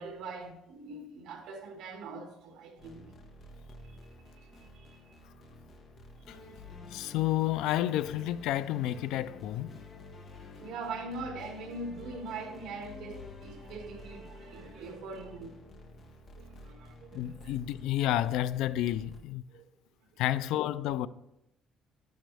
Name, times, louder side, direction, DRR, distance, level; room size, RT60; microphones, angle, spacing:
voice 1, 0.0-3.1 4.5-5.2 10.6-15.6 16.4-17.5 19.5-19.6, right 3 dB, 65° right, 2.0 m, -42 dB
sound 1, 2.8-19.2, left 2 dB, 35° left, 1.5 m, -50 dB
voice 2, 6.9-9.8 17.1-19.4 20.2-21.1, left 13 dB, 80° left, 0.4 m, -30 dB
10.5 x 10.5 x 3.4 m
cardioid pair, 175°, 0 cm